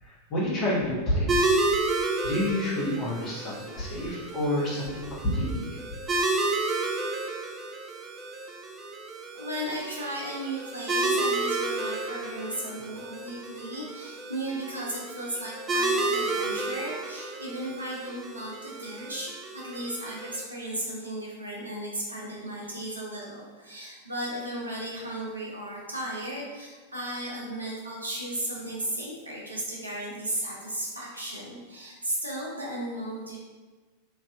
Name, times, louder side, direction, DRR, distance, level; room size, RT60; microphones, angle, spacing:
voice 1, 0.0-1.6 2.0-5.8, left 1 dB, 35° left, -6 dB, 1.1 m, -29 dB
sound 1, 1.3-20.4, right 2 dB, 20° right, 0.3 m, -31 dB
voice 2, 9.3-33.4, right 1 dB, 80° right, -4 dB, 0.7 m, -35 dB
3.3 x 2.6 x 2.3 m, 1.3 s
figure-of-eight pair, 90°, 0 cm